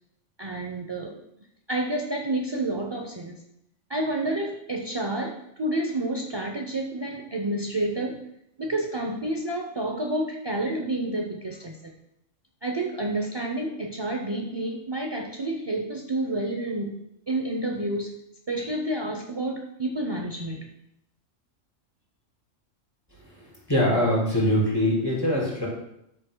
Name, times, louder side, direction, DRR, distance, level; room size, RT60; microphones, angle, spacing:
voice 1, 0.4-1.1 1.7-3.4 3.9-8.2 8.6-11.9 12.6-16.9 17.3-18.1 18.5-20.6, right 1 dB, 35° right, 1 dB, 0.4 m, -29 dB
voice 2, 23.7-25.7, equal, 20° left, -5 dB, 3.6 m, -22 dB
12.5 x 6.9 x 2.2 m, 0.80 s
omnidirectional pair, 1.3 m